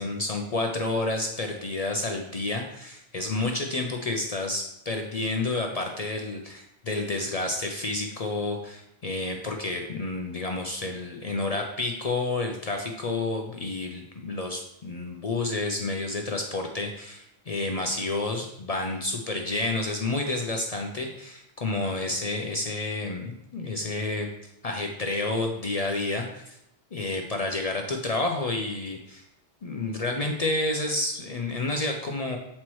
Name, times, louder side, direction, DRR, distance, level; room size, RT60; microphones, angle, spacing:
voice 1, 0.0-24.3 24.6-26.6 26.9-29.2 29.6-32.4, left 2 dB, 45° left, 2 dB, 0.5 m, -30 dB
7.4 x 4.3 x 3.1 m, 0.81 s
omnidirectional pair, 1.2 m